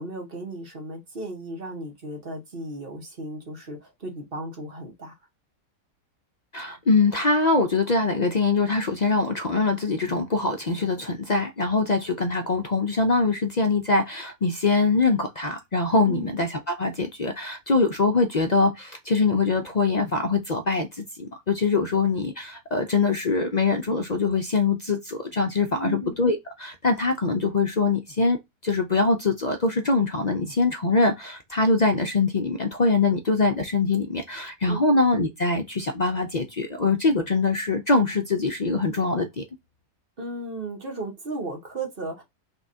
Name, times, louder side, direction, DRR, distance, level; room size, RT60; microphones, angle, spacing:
voice 1, 0.0-5.2 16.0-16.3 25.7-26.1 34.7-34.9 40.2-42.2, right 2 dB, 35° right, 1.3 m, -35 dB
voice 2, 6.5-28.4 28.6-39.4, left 3 dB, 60° left, 0.4 m, -23 dB
5.5 x 3.4 x 2.8 m
omnidirectional pair, 1.7 m